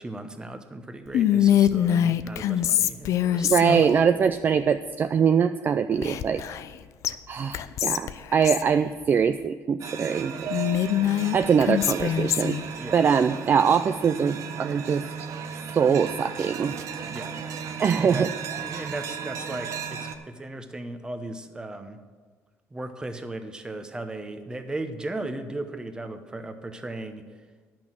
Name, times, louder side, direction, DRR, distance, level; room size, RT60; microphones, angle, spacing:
voice 1, 0.0-3.9 12.8-13.1 17.1-17.4 18.0-22.0 22.7-27.3, right 2 dB, 15° right, 8 dB, 0.8 m, -36 dB
Whispering, 1.1-4.0 6.0-6.8 7.0-7.1 7.5-8.7 10.5-12.6, left 10 dB, 60° left, 0.4 m, -23 dB
voice 2, 3.5-6.4 7.3-10.5 11.3-12.6 12.9-15.0 15.7-16.7 17.8-18.3, right 7 dB, 35° right, 10 dB, 0.3 m, -23 dB
sound 1, 9.8-20.1, right 6 dB, 60° right, 0.8 m, -35 dB
10.5 x 6.1 x 7.4 m, 1.4 s
cardioid pair, 135°, 6 cm